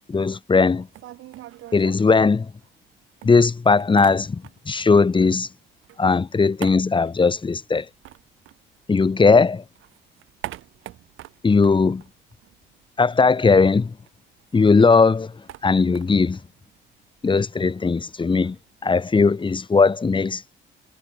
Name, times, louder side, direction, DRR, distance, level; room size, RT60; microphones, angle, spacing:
voice 1, 0.1-0.9 1.7-2.5 3.2-5.5 6.0-7.8 8.9-9.6 11.4-12.0 13.0-13.9 14.5-15.3 15.6-16.4 17.2-18.6 18.8-20.4, left 4 dB, 25° left, 1.0 m, -18 dB
sound 1, 0.7-2.9 3.2-4.8 5.1-9.3 9.6-12.9 13.1-13.2 13.5-19.3, right 14 dB, 85° right, 6.8 m, -44 dB
cardioid pair, 90°, 20 cm